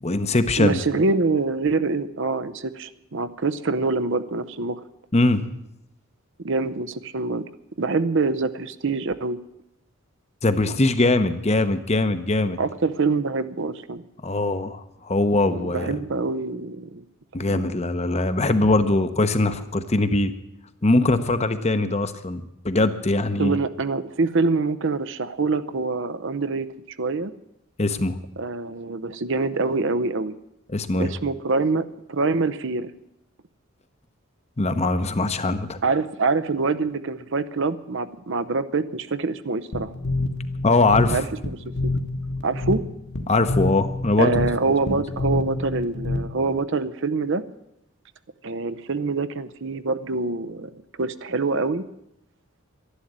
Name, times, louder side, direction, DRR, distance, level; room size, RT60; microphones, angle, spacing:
voice 1, 0.0-0.8 5.1-5.4 10.4-12.6 14.2-16.0 17.3-20.3 20.8-23.6 27.8-28.2 30.7-31.1 34.6-35.8 40.6-41.2 43.3-44.3 44.9-45.0, left 2 dB, 30° left, 10 dB, 0.9 m, -21 dB
voice 2, 0.6-4.8 6.4-7.4 7.8-9.4 12.6-14.0 15.5-17.0 17.5-17.6 23.4-26.7 27.0-27.3 28.4-30.4 31.0-32.9 35.8-39.9 41.1-41.6 42.4-42.8 44.2-47.4 48.4-50.7 51.0-51.9, right 3 dB, 60° right, 13 dB, 0.7 m, -25 dB
sound 1, 39.7-46.6, left 2 dB, 55° left, 1.5 m, -28 dB
12.0 x 11.5 x 8.7 m, 0.82 s
head